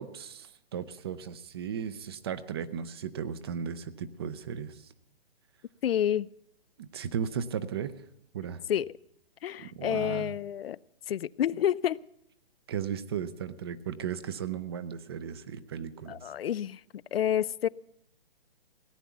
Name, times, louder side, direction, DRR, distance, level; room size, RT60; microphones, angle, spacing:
voice 1, 0.0-4.8 6.8-7.9 8.3-8.6 9.6-10.3 12.7-16.2, right 8 dB, 25° right, 15 dB, 0.5 m, -36 dB
voice 2, 5.8-6.3 8.7-8.9 9.4-10.8 11.1-12.0 16.1-16.8 17.1-17.7, left 10 dB, 75° left, 20 dB, 0.5 m, -29 dB
17.5 x 9.2 x 7.0 m, 0.73 s
hypercardioid pair, 150°, 30 cm